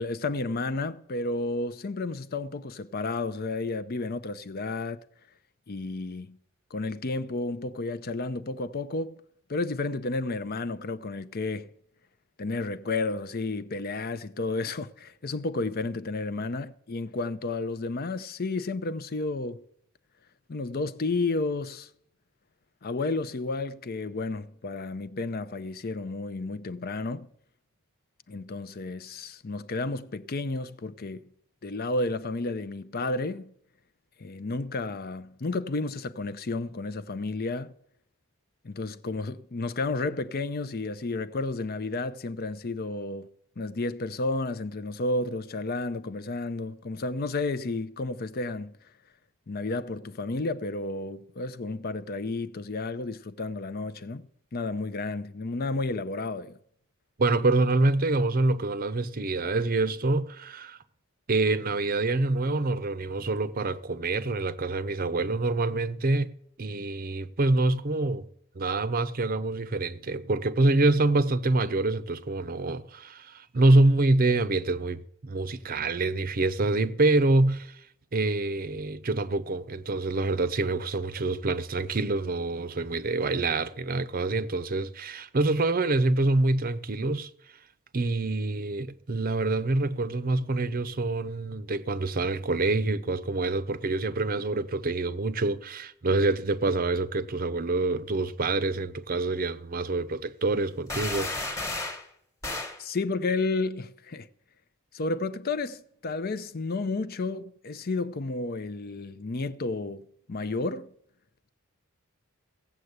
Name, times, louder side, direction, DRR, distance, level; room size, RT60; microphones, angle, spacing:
voice 1, 0.0-5.0 5.7-6.4 6.7-9.1 9.5-11.7 12.4-19.6 20.5-21.9 22.8-27.3 28.3-31.2 31.6-33.5 34.2-37.7 38.6-43.3 43.6-48.7 49.5-54.3 54.5-56.6 102.8-104.3 104.9-110.9, left 3 dB, 45° left, 0.6 m, -32 dB
voice 2, 57.2-60.8 61.3-66.3 66.6-68.3 68.6-77.8 78.1-87.3 87.9-101.6, right 2 dB, 40° right, 0.6 m, -26 dB
sound 1, 100.9-102.1 102.4-102.8, left 2 dB, 15° left, 1.4 m, -32 dB
16.5 x 7.6 x 8.0 m
head